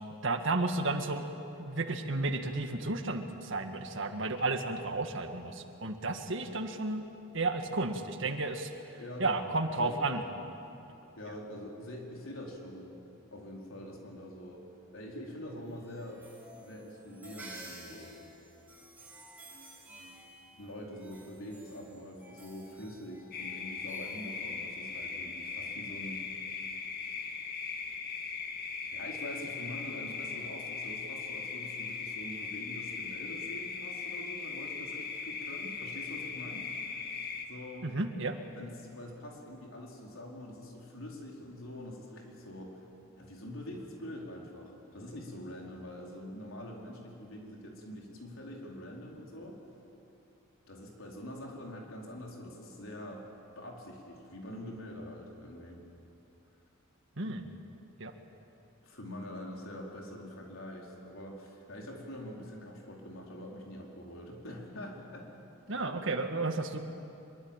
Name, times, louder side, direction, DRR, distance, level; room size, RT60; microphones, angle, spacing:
voice 1, 0.2-1.2 1.6-7.0 7.3-8.7 9.2-10.2 37.8-38.4 57.2-57.4 58.0-58.1 65.7-66.8, right 2 dB, 65° right, 6 dB, 1.8 m, -32 dB
voice 2, 9.0-9.4 9.7-10.2 11.2-12.9 13.3-14.6 14.9-16.2 16.5-18.1 20.6-26.2 28.9-37.1 37.5-37.9 38.5-42.9 43.2-49.6 50.7-53.2 53.5-55.8 58.8-65.3, left 1 dB, 75° left, -1 dB, 4.8 m, -45 dB
sound 1, 15.5-25.0, right 1 dB, 10° right, 7.1 m, -53 dB
sound 2, 23.3-37.5, left 5 dB, 50° left, 2.1 m, -39 dB
24.5 x 23.0 x 9.1 m, 2.8 s
head